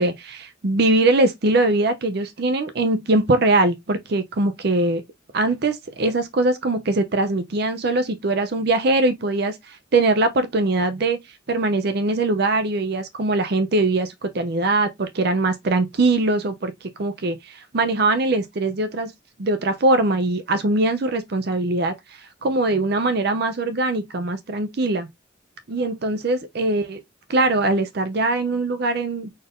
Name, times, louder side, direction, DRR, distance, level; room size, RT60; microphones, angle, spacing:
voice 1, 0.0-5.0 5.3-11.2 11.5-19.1 19.4-25.1 25.7-27.0 27.3-29.3, right 2 dB, 55° right, 0.6 m, -22 dB
4.3 x 2.6 x 3.5 m
head